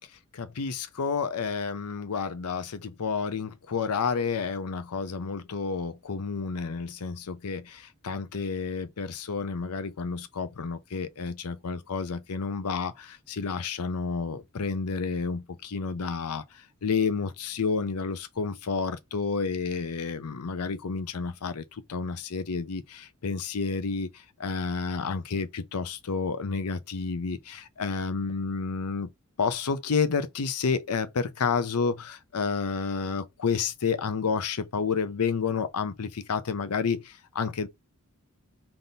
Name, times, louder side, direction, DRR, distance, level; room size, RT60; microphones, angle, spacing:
voice 1, 0.3-16.4 16.8-24.1 24.4-29.1 29.4-37.7, left 5 dB, 90° left, 0.6 m, -30 dB
3.6 x 2.5 x 4.1 m
head